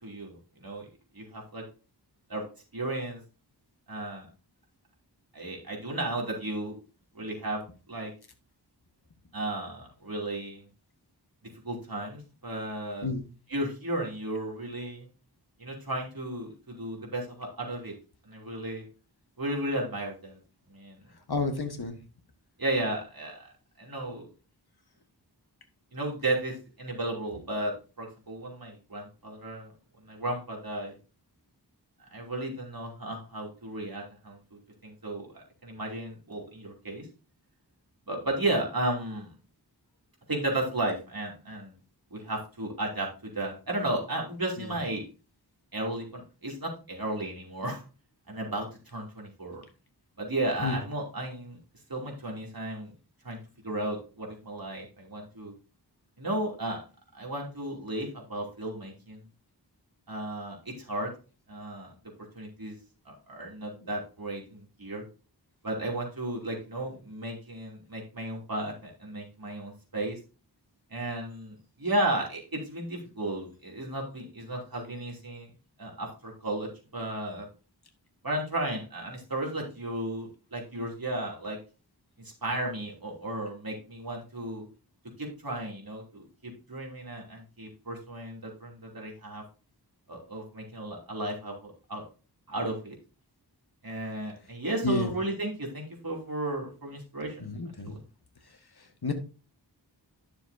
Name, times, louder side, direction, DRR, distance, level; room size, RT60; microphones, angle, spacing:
voice 1, 0.0-0.9 1.1-1.6 2.3-2.5 2.7-3.2 3.9-4.3 5.3-6.8 7.1-7.6 7.9-8.1 9.3-10.7 11.6-13.1 13.5-15.1 15.6-17.9 18.2-18.8 19.4-20.4 20.7-21.0 22.6-23.4 23.8-24.3 25.9-29.7 30.0-30.9 32.1-37.1 38.1-39.3 40.3-41.7 42.1-45.0 45.7-47.8 48.3-49.6 50.2-51.6 51.9-52.9 53.2-53.4 53.6-55.5 56.2-56.8 57.1-59.2 60.1-61.1 61.5-61.9 62.3-62.8 63.0-65.0 65.6-70.2 70.9-75.5 75.8-77.5 78.2-81.6 82.2-84.7 85.2-89.4 90.1-92.0 92.5-93.0 93.8-97.5 97.9-98.0, right 1 dB, 55° right, -1 dB, 3.0 m, -34 dB
voice 2, 21.3-22.0 44.6-44.7 50.6-50.8 94.8-95.1 97.4-98.0 99.0-99.1, left 3 dB, 65° left, 5 dB, 1.6 m, -30 dB
10.5 x 6.8 x 2.7 m, 0.34 s
wide cardioid pair, 65°, 42 cm